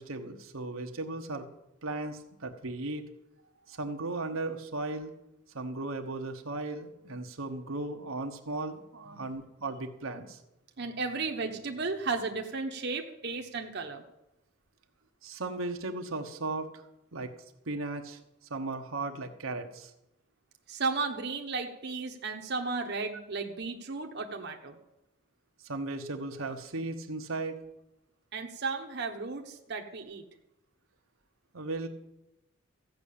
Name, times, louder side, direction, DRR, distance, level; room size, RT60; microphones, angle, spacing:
voice 1, 0.0-1.5 1.8-3.0 3.7-5.1 5.5-10.4 15.2-16.7 17.1-17.3 17.7-18.2 18.5-19.9 25.6-27.6 31.5-31.9, right 2 dB, 75° right, 4 dB, 1.2 m, -36 dB
voice 2, 10.8-14.0 20.7-24.8 28.3-30.2, right 4 dB, 55° right, 3 dB, 1.1 m, -34 dB
14.5 x 6.1 x 8.6 m, 0.89 s
head